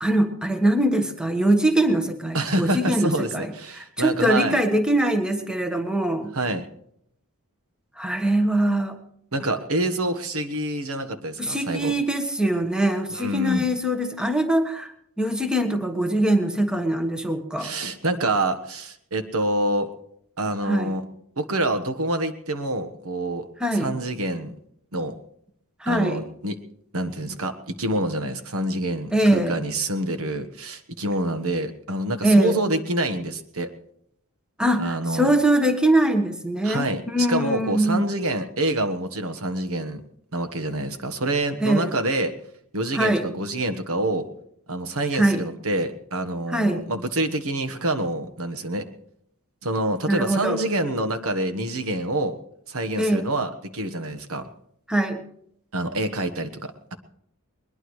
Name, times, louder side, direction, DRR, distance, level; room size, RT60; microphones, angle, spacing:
voice 1, 0.0-6.3 8.0-9.0 11.4-14.9 15.2-17.7 20.6-20.9 23.6-23.9 25.8-26.2 29.1-29.6 32.2-32.6 34.6-38.1 41.6-41.9 42.9-43.3 45.1-45.4 46.5-46.8 50.1-50.6 53.0-53.3 54.9-55.2, right 1 dB, 5° right, 6 dB, 1.3 m, -22 dB
voice 2, 2.3-4.6 6.3-6.6 9.3-11.9 13.1-13.6 17.6-19.9 20.4-21.0 21.4-24.5 24.9-25.1 25.9-26.6 26.9-33.7 34.8-35.3 36.6-40.0 40.3-42.3 42.7-44.3 44.7-48.9 49.6-52.3 52.7-54.5 55.7-56.9, right 1 dB, 65° right, 9 dB, 1.3 m, -27 dB
21.0 x 21.0 x 3.2 m, 0.71 s
head